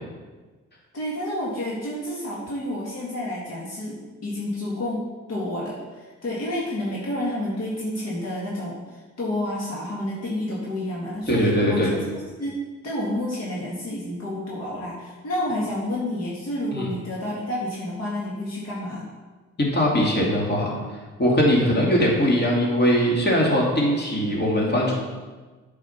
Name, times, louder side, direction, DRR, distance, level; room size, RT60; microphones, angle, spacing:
voice 1, 0.9-12.0 12.4-12.6 12.8-19.1 21.6-21.8, left 1 dB, 55° left, -5 dB, 2.0 m, -29 dB
voice 2, 11.3-11.9 16.7-16.9 19.6-20.8 21.2-24.9, equal, 35° left, -3 dB, 2.6 m, -21 dB
8.4 x 5.0 x 5.7 m, 1.3 s
cardioid pair, 90°, 30 cm